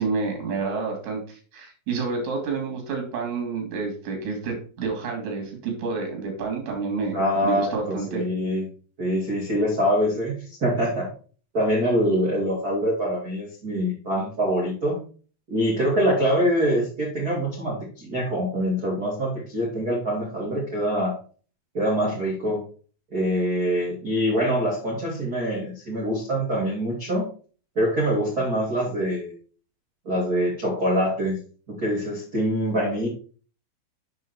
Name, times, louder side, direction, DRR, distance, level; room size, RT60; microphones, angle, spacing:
voice 1, 0.0-8.2, right 4 dB, 45° right, 2 dB, 3.2 m, -29 dB
voice 2, 7.1-8.7 9.0-11.1 11.5-15.0 15.5-21.2 21.7-22.6 23.1-27.3 27.7-29.3 30.0-31.4 31.7-33.1, equal, 70° right, -4 dB, 0.8 m, -24 dB
7.3 x 6.1 x 4.3 m, 0.40 s
omnidirectional pair, 5.8 m